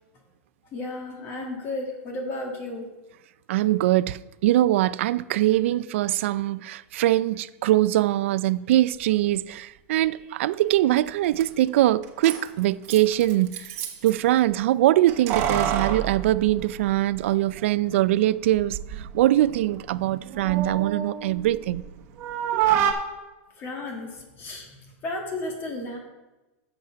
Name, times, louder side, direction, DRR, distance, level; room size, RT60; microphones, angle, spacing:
voice 1, 0.7-2.9 23.6-24.7 25.0-26.0, left 2 dB, 30° left, 1.8 m, -33 dB
voice 2, 3.5-13.6 14.0-21.8 22.5-22.6, right 14 dB, 70° right, 0.4 m, -22 dB
Keys jangling, 11.1-11.2 11.4-11.5 12.0-14.2 15.1-17.2 17.5-17.6 18.5-19.1 19.4-21.9 22.2-22.9, right 9 dB, 40° right, 1.2 m, -28 dB
9.6 x 7.2 x 4.6 m
supercardioid pair, 145°, 7 cm